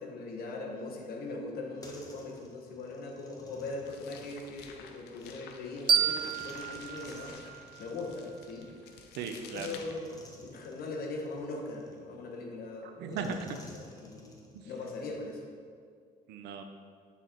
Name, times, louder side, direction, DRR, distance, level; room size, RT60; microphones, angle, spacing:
voice 1, 0.0-7.4 7.8-8.7 9.5-13.3 14.0-15.4, left 2 dB, 65° left, 1 dB, 1.1 m, -40 dB
sound 1, 1.5-5.4 6.4-9.0 9.5-12.4 13.1-15.5, left 2 dB, 20° left, 0.9 m, -55 dB
sound 2, 3.8-10.3, left 6 dB, 80° left, 0.6 m, -51 dB
sound 3, 5.9-8.7, right 7 dB, 30° right, 0.4 m, -31 dB
voice 2, 9.1-9.7 12.8-13.6 14.5-14.7 16.3-16.6, right 6 dB, 85° right, 7 dB, 0.6 m, -37 dB
8.2 x 4.2 x 3.8 m, 2.1 s
cardioid pair, 110°, 17 cm